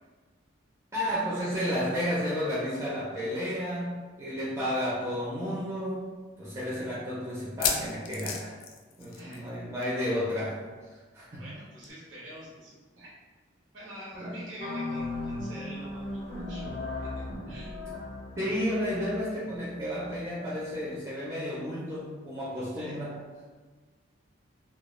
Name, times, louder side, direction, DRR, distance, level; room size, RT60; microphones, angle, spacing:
voice 1, 0.9-6.0 6.4-8.5 9.0-10.6 10.9-11.5 14.2-14.4 18.4-23.2, equal, 15° right, -8 dB, 0.4 m, -32 dB
sound 1, 4.7-4.8 5.1-5.2 5.8-5.9 7.4-9.5 9.8-10.0 10.3-10.4 11.8-11.9, left 6 dB, 85° left, 0.3 m, -33 dB
voice 2, 9.1-9.4 11.3-13.1 13.7-16.7 17.1-17.7 22.7-23.0, equal, 80° right, -7 dB, 0.8 m, -46 dB
sound 2, 14.6-20.9, left 2 dB, 30° left, 0.5 m, -38 dB
2.2 x 2.1 x 3.0 m, 1.4 s
head